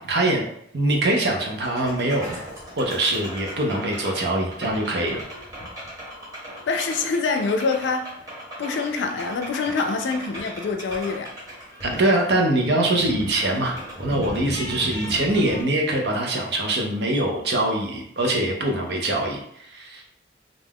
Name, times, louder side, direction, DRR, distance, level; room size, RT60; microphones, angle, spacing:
voice 1, 0.1-0.5 0.7-2.3 2.8-5.2 11.8-20.0, right 1 dB, 65° right, 0.6 m, -23 dB
sound 1, 1.6-15.6, equal, 20° right, 1.0 m, -37 dB
voice 2, 6.7-8.2 8.6-11.3, left 4 dB, 80° left, 0.4 m, -25 dB
2.5 x 2.3 x 3.4 m
head